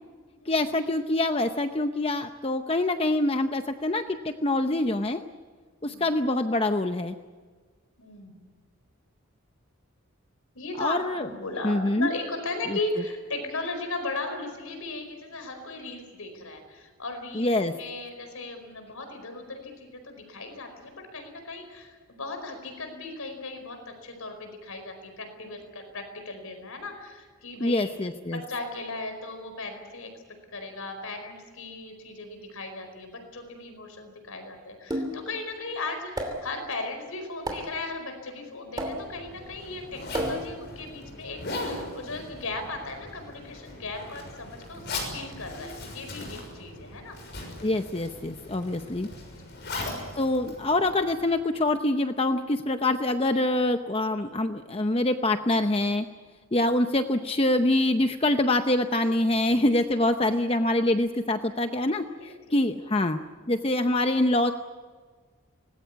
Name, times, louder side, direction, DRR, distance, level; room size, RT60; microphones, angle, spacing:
voice 1, 0.5-5.2 5.8-7.1 10.8-11.3 11.6-12.1 12.7-12.8 17.3-17.7 27.6-28.4 47.6-49.1 50.2-56.1 56.5-62.0 62.5-63.2 63.5-64.5, left 1 dB, 25° left, 7 dB, 0.7 m, -25 dB
voice 2, 8.0-8.4 10.5-27.9 28.3-30.1 30.5-47.2 49.1-50.1 61.8-62.6 63.4-63.6, left 2 dB, 80° left, 6 dB, 4.8 m, -37 dB
sound 1, 34.9-35.4 36.2-36.6 37.5-37.8 38.8-39.3 40.1-40.7, right 1 dB, 20° right, 2.9 m, -32 dB
Zipper (clothing), 38.7-51.4, left 2 dB, 50° left, 6.6 m, -39 dB
25.0 x 19.5 x 8.4 m, 1.5 s
head